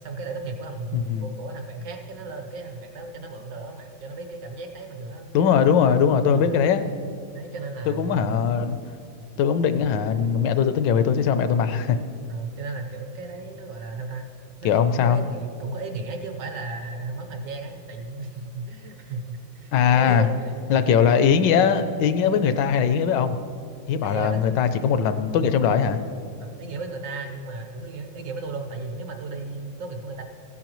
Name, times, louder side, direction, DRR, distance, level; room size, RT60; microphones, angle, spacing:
voice 1, 0.0-6.5 7.3-8.6 12.3-14.3 14.6-21.0 24.0-24.5 24.8-25.1 25.4-25.6 26.4-30.2, right 3 dB, 70° right, 5 dB, 1.7 m, -35 dB
voice 2, 0.9-1.2 5.3-6.8 8.0-8.8 9.4-12.0 14.6-15.2 19.7-20.3 20.7-23.4 23.9-26.0, left 7 dB, 75° left, 10 dB, 1.2 m, -20 dB
16.0 x 10.5 x 3.0 m, 2.3 s
omnidirectional pair, 2.0 m